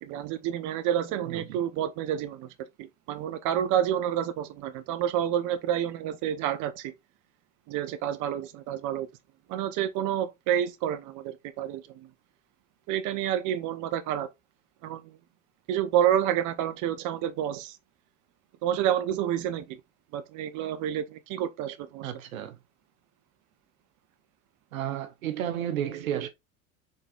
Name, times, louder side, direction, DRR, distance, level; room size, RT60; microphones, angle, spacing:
voice 1, 0.0-2.5 2.8-6.9 7.7-9.1 9.5-12.1 12.9-14.3 14.8-15.2 15.7-17.8 18.6-19.8 20.1-22.1, right 10 dB, 50° right, 0.8 m, -29 dB
voice 2, 22.0-22.6 24.7-26.3, right 10 dB, 85° right, 0.9 m, -32 dB
5.4 x 3.8 x 2.3 m
hypercardioid pair, 90°, 40 cm